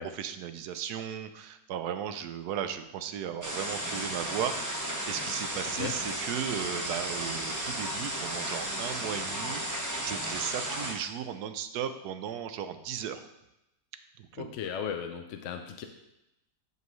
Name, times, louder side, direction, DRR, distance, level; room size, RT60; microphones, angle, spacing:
voice 1, 0.0-13.2 14.2-14.5, right 9 dB, 75° right, 10 dB, 1.1 m, -36 dB
sound 1, 3.4-10.9, right 1 dB, 15° right, 0.8 m, -34 dB
voice 2, 14.4-15.8, left 7 dB, 65° left, 5 dB, 0.8 m, -36 dB
12.5 x 5.5 x 3.1 m, 0.90 s
omnidirectional pair, 1.8 m